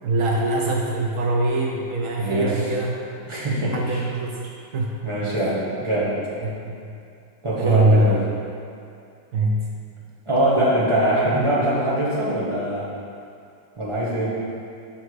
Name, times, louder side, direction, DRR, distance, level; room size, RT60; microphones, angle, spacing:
voice 1, 0.0-2.9 3.7-4.9 5.3-5.7 6.4-6.9 7.6-8.1 9.3-9.7, right 1 dB, 80° right, -1 dB, 0.7 m, -23 dB
voice 2, 2.2-2.5 3.3-4.0 5.0-6.1 7.4-8.2 10.3-12.8 13.8-14.4, right 1 dB, 20° right, -7 dB, 0.9 m, -22 dB
5.8 x 4.3 x 4.7 m, 2.5 s
omnidirectional pair, 2.0 m